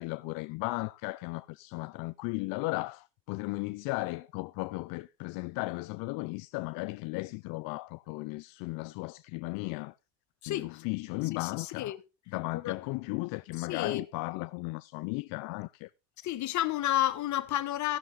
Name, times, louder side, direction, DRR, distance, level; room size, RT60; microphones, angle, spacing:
voice 1, 0.0-9.9 10.5-11.9 12.3-15.9, left 24 dB, 75° left, 0.5 m, -35 dB
voice 2, 10.4-10.8 11.3-12.0 12.6-12.8 13.6-14.0 16.2-18.0, left 13 dB, 60° left, 1.1 m, -31 dB
16.5 x 6.5 x 3.8 m
supercardioid pair, 90°, 34 cm